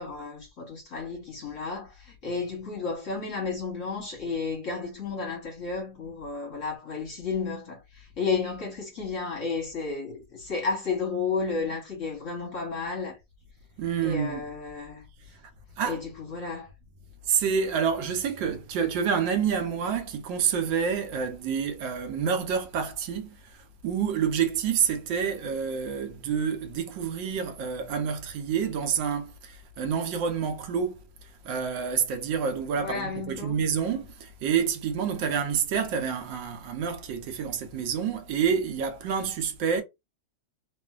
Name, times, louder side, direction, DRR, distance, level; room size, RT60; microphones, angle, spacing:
voice 1, 0.0-13.2 14.0-15.1 15.8-16.7 32.8-33.6, left 4 dB, 50° left, 1.1 m, -32 dB
voice 2, 13.8-14.4 15.8-16.0 17.3-31.0 31.4-39.8, right 7 dB, 75° right, 1.3 m, -28 dB
3.1 x 2.5 x 2.3 m
omnidirectional pair, 2.1 m